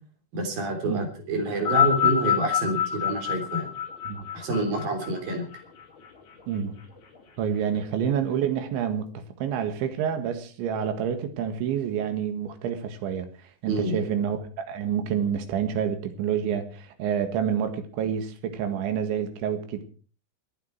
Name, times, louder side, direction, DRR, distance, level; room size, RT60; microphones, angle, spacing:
voice 1, 0.3-3.7 4.3-5.5 13.7-14.0, right 2 dB, 55° right, 4.9 m, -28 dB
sound 1, 1.5-6.1 7.0-7.1, left 9 dB, 60° left, 5.7 m, -26 dB
voice 2, 6.5-6.8 7.4-13.3 13.6-19.8, right 8 dB, 85° right, 4.1 m, -28 dB
27.5 x 9.4 x 4.6 m
omnidirectional pair, 5.2 m